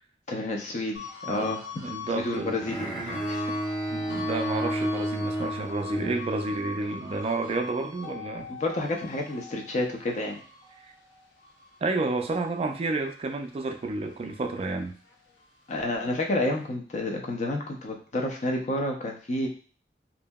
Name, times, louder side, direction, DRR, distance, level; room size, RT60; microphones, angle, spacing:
voice 1, 0.3-1.6 2.1-3.5 8.5-10.4 15.7-19.5, left 1 dB, 40° left, 2 dB, 0.5 m, -30 dB
sound 1, 0.9-13.6 14.0-15.7, left 5 dB, 80° left, 0.7 m, -42 dB
voice 2, 1.3-2.6 3.9-8.5 10.8-10.9 11.8-15.0, right 3 dB, 35° right, 6 dB, 0.3 m, -30 dB
Bowed string instrument, 2.6-6.8, right 1 dB, 10° left, 0.8 m, -32 dB
2.7 x 2.6 x 2.2 m, 0.41 s
head